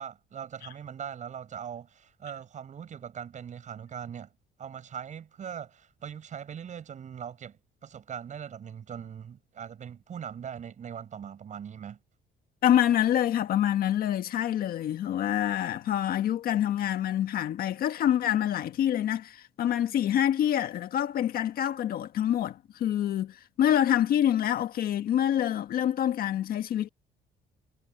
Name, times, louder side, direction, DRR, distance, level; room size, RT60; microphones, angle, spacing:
voice 1, 0.0-4.3 4.6-12.0, right 8 dB, 45° right, 7.9 m, -41 dB
voice 2, 12.6-26.9, left 11 dB, 60° left, 1.7 m, -26 dB
cardioid pair, 110°, 17 cm